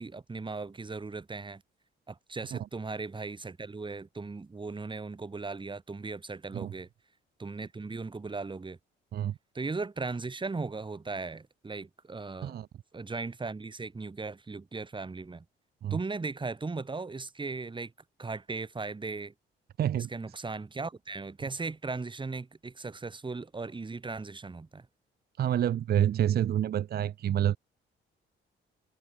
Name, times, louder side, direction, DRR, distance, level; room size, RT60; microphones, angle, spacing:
voice 1, 0.0-1.6 2.1-6.9 7.4-8.8 9.5-12.6 12.9-15.4 15.9-17.9 18.2-19.3 20.0-24.9, right 3 dB, 25° right, 3.3 m, -37 dB
voice 2, 19.8-20.1 25.4-27.6, right 10 dB, 50° right, 0.6 m, -27 dB
cardioid pair, 90°, 20 cm